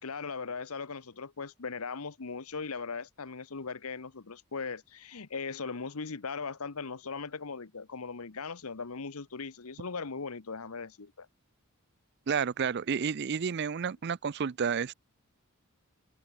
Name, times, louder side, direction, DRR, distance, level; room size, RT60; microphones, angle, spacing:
voice 1, 0.0-11.3, left 4 dB, 85° left, 1.0 m, -39 dB
voice 2, 12.3-14.9, right 6 dB, 50° right, 0.4 m, -30 dB
open air
head